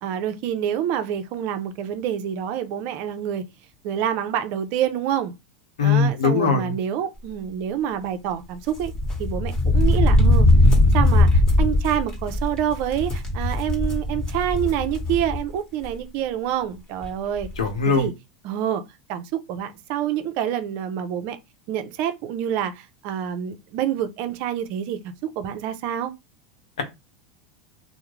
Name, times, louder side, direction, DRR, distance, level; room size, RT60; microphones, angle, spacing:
voice 1, 0.0-3.4 3.8-5.3 5.8-8.9 9.2-10.5 10.9-17.5 17.9-18.1 18.4-18.8 19.1-21.4 21.7-26.1, right 10 dB, 55° right, 0.5 m, -27 dB
voice 2, 5.8-6.8 17.6-18.1, left 5 dB, 85° left, 0.8 m, -20 dB
sound 1, 8.7-15.5 15.8-15.9 17.0-17.1 17.4-17.6, left 1 dB, 20° left, 1.1 m, -20 dB
2.3 x 2.0 x 3.0 m
hypercardioid pair, 100°, 4 cm